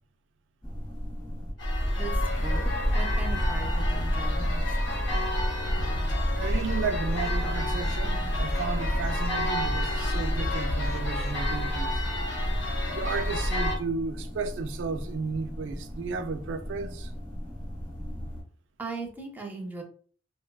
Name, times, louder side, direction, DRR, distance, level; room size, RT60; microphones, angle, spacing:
sound 1, 0.6-18.4, equal, 20° left, 0.9 m, -39 dB
sound 2, 1.6-13.8, left 1 dB, 85° left, 0.9 m, -28 dB
voice 1, 2.4-4.6 18.8-19.8, right 3 dB, 10° right, 0.5 m, -38 dB
sound 3, 5.9-11.3, equal, 60° left, 0.6 m, -37 dB
voice 2, 6.3-11.9 12.9-17.1, right 4 dB, 75° right, 0.3 m, -33 dB
3.2 x 2.1 x 2.2 m
head